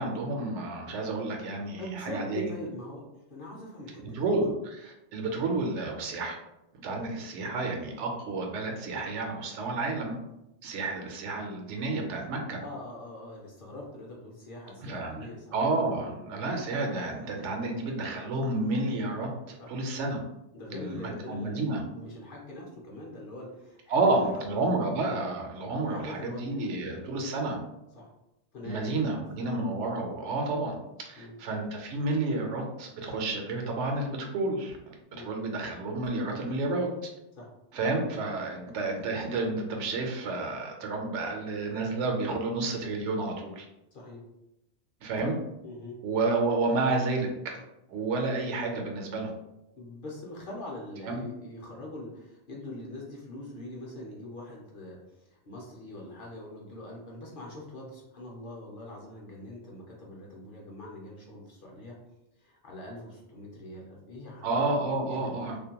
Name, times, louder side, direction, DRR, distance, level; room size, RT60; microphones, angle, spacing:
voice 1, 0.0-2.6 4.1-6.4 6.7-10.2 10.6-12.6 14.8-20.2 20.7-21.8 23.9-27.6 28.6-30.8 31.0-36.9 37.7-43.7 45.0-45.4 46.0-47.6 47.9-49.3 51.0-51.2 64.4-65.6, right 2 dB, 85° right, 2 dB, 0.9 m, -30 dB
voice 2, 1.8-4.3 12.6-15.5 15.9-16.1 19.6-19.7 20.5-24.9 25.8-27.2 27.9-28.1 28.5-29.6 31.2-31.4 35.1-35.3 37.4-37.5 43.9-44.2 45.6-46.0 49.8-62.0 62.4-64.6 65.1-65.3, left 1 dB, 55° left, -2 dB, 0.7 m, -43 dB
2.5 x 2.1 x 2.8 m, 0.90 s
omnidirectional pair, 1.2 m